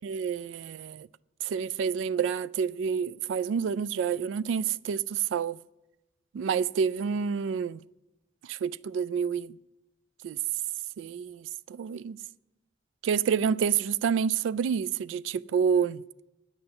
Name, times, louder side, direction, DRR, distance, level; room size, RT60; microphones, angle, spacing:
voice 1, 0.0-1.1 1.4-5.6 6.3-7.8 8.4-9.6 10.2-10.4 11.0-12.2 13.0-16.0, right 7 dB, 80° right, 0.3 m, -28 dB
9.8 x 8.0 x 6.8 m
head